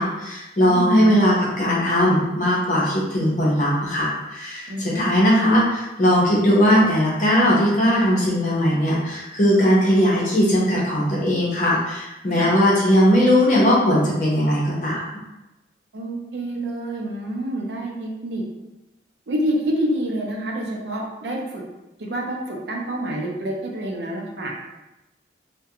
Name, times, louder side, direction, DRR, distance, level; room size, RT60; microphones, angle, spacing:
voice 1, 0.0-15.0, equal, 45° left, -5 dB, 0.7 m, -19 dB
voice 2, 0.7-1.1 4.7-5.0 12.3-12.5 15.9-18.4 19.3-21.6 22.0-24.5, right 1 dB, 70° right, -1 dB, 0.5 m, -27 dB
2.4 x 2.1 x 2.7 m, 1.0 s
head